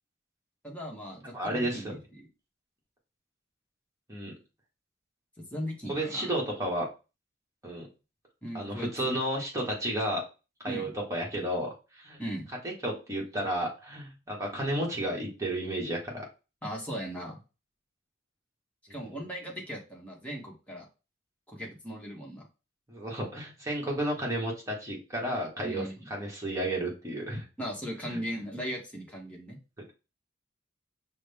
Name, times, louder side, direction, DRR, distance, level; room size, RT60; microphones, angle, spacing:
voice 1, 0.6-2.3 5.4-6.3 8.4-9.1 10.7-10.9 12.2-12.5 16.6-17.4 18.9-20.9 21.5-22.4 25.6-26.1 27.6-29.6, equal, 5° left, -2 dB, 1.2 m, -38 dB
voice 2, 1.3-2.0 4.1-4.3 5.9-6.9 7.6-7.9 8.5-10.2 10.6-12.2 12.6-16.3 18.9-19.1 22.9-27.4 28.1-28.2, right 1 dB, 15° right, -2 dB, 1.5 m, -32 dB
6.1 x 2.2 x 3.4 m, 0.30 s
head